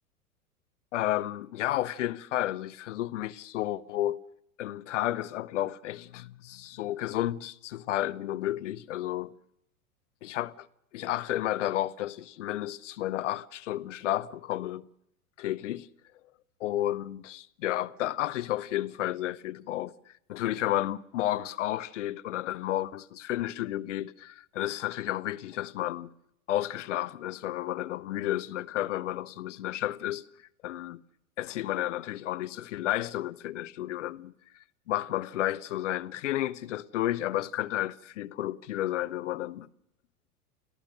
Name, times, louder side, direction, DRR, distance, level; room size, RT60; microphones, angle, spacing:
voice 1, 0.9-4.2 4.6-9.3 10.2-10.7 10.9-14.8 15.4-15.9 16.6-19.9 20.3-26.1 26.5-30.2 30.6-31.0 31.4-34.3 34.9-39.7, left 14 dB, 55° left, 0.8 m, -32 dB
29.0 x 15.5 x 6.5 m
figure-of-eight pair, 90°, 45 cm